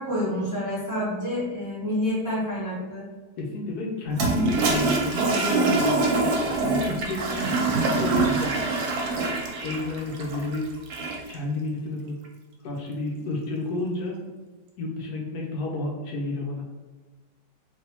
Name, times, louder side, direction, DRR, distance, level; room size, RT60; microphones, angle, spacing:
voice 1, 0.0-3.0, left 1 dB, 25° right, -8 dB, 0.4 m, -28 dB
voice 2, 3.4-6.0 6.4-8.5 9.6-10.7 11.3-12.2 12.6-14.2 14.8-16.6, left 2 dB, 70° left, -2 dB, 1.0 m, -31 dB
Toilet flush, 4.1-11.3, right 3 dB, 70° right, 1.0 m, -24 dB
3.4 x 2.6 x 2.8 m, 1.2 s
omnidirectional pair, 1.9 m